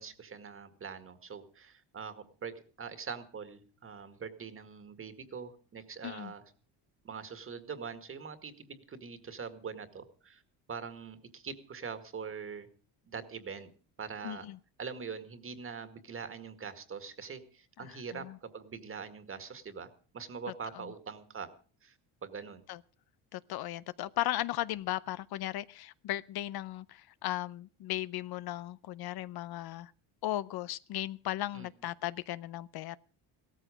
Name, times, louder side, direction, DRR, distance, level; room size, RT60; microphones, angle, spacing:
voice 1, 0.0-2.5 2.8-6.4 7.0-10.4 10.7-12.7 13.1-13.7 14.0-14.5 14.8-19.9 20.1-21.5 21.8-22.0 22.2-22.6 31.5-31.7, right 6 dB, 30° right, 1.9 m, -43 dB
voice 2, 14.2-14.6 17.8-18.4 22.7-22.8 23.3-29.9 30.2-33.0, left 14 dB, 60° left, 0.6 m, -36 dB
16.5 x 13.5 x 5.0 m
cardioid pair, 135°, 41 cm